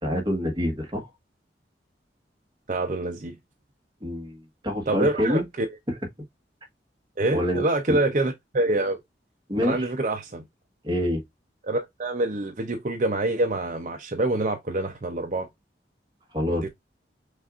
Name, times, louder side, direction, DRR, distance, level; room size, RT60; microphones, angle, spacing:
voice 1, 0.0-1.1 4.0-5.4 5.9-6.0 7.3-8.0 9.5-9.9 10.8-11.2 16.3-16.7, left 1 dB, 25° right, 1.3 m, -26 dB
voice 2, 2.7-3.4 4.9-5.7 7.2-9.0 9.6-10.4 11.6-15.5 16.5-16.7, right 2 dB, 45° right, 0.6 m, -26 dB
6.2 x 2.5 x 2.4 m
head